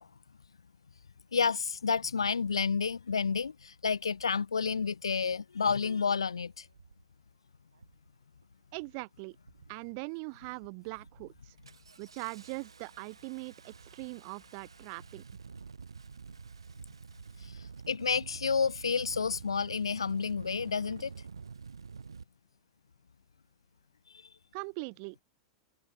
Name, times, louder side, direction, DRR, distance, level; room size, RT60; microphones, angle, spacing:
voice 1, 1.3-6.7 17.4-17.6 17.9-21.1, left 5 dB, 80° left, 0.3 m, -30 dB
Engine starting, 5.9-6.0 6.7-7.0 7.7-8.1 8.4-8.9 9.4-9.9 10.3-10.5 10.9-22.2, right 5 dB, 75° right, 0.8 m, -49 dB
voice 2, 8.7-9.3 9.7-11.5 12.0-15.2 24.5-25.2, right 40 dB or more, 45° right, 1.4 m, -41 dB
figure-of-eight pair, 90°, 3 cm